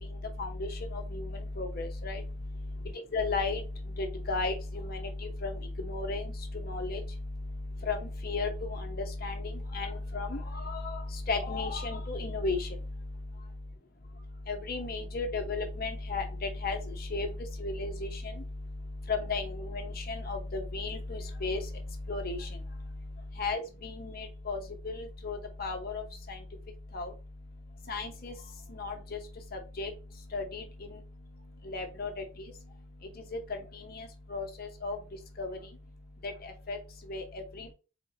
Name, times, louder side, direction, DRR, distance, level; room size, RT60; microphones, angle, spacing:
voice 1, 0.4-2.2 3.1-3.6 4.0-7.0 7.9-12.7 14.5-17.3 17.6-18.3 19.1-21.6 22.1-22.5 23.4-26.4 26.9-27.1 27.9-28.3 28.7-29.2 29.5-29.9 30.3-30.6 31.7-32.2 33.3-35.0 35.4-35.6 36.2-36.8 37.1-37.7, left 3 dB, 45° left, 4 dB, 0.8 m, -34 dB
4.4 x 3.6 x 2.8 m, 0.32 s
head